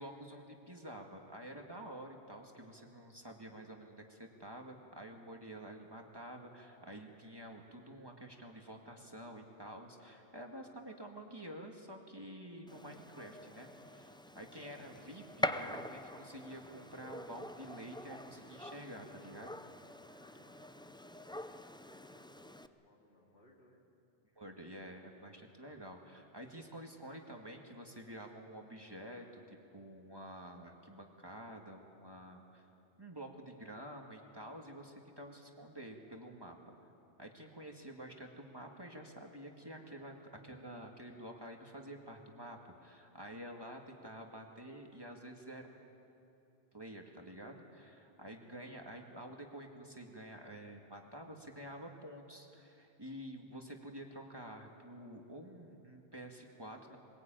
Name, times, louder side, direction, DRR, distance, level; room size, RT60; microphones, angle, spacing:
voice 1, 0.0-19.5 24.4-32.7 33.0-36.8 37.2-45.7 46.7-57.0, right 1 dB, 25° right, 2 dB, 1.9 m, -49 dB
Gunshot gunfire, 12.7-22.7, left 1 dB, 5° left, 0.3 m, -44 dB
voice 2, 20.1-23.8, left 1 dB, 75° left, -1 dB, 3.4 m, -65 dB
22.0 x 21.0 x 9.1 m, 2.8 s
omnidirectional pair, 1.1 m